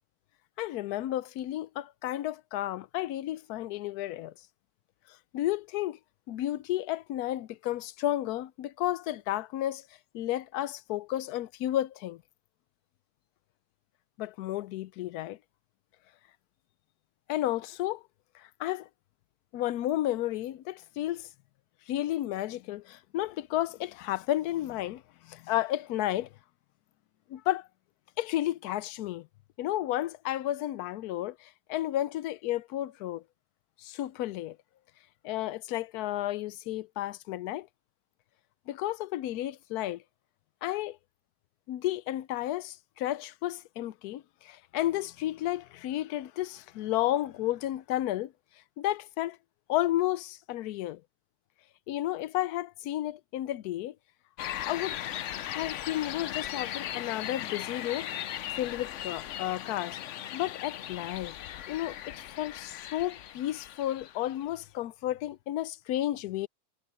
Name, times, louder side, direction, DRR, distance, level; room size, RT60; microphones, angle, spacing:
voice 1, 0.6-4.3 5.3-6.0 6.3-9.8 10.1-12.2 14.2-15.4 17.3-18.0 18.3-18.9 19.5-21.3 21.9-26.3 27.3-27.7 28.2-29.3 29.6-33.2 33.8-34.6 35.2-37.7 38.7-40.0 40.6-41.0 41.7-48.3 48.8-49.4 49.7-51.0 51.9-53.9 54.7-55.0 55.4-58.1 58.6-61.3 61.7-66.5, left 14 dB, 85° left, 1.1 m, -32 dB
sound 1, 54.4-64.4, left 11 dB, 65° left, 0.8 m, -38 dB
omnidirectional pair, 1.6 m